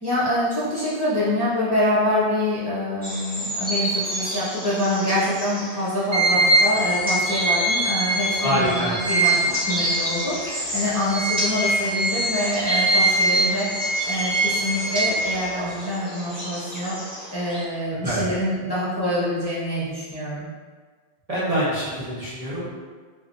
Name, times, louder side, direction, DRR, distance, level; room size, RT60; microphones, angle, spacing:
voice 1, 0.0-16.9 17.3-20.5, left 1 dB, 25° left, -10 dB, 0.8 m, -25 dB
sound 1, 3.0-17.6, equal, 10° right, 1.2 m, -31 dB
sound 2, 6.1-10.5 10.9-15.8, right 2 dB, 90° right, 1.2 m, -23 dB
voice 2, 8.4-8.9 18.0-18.2 21.3-22.6, equal, 35° right, -9 dB, 1.0 m, -25 dB
3.6 x 3.2 x 2.7 m, 1.5 s
omnidirectional pair, 1.1 m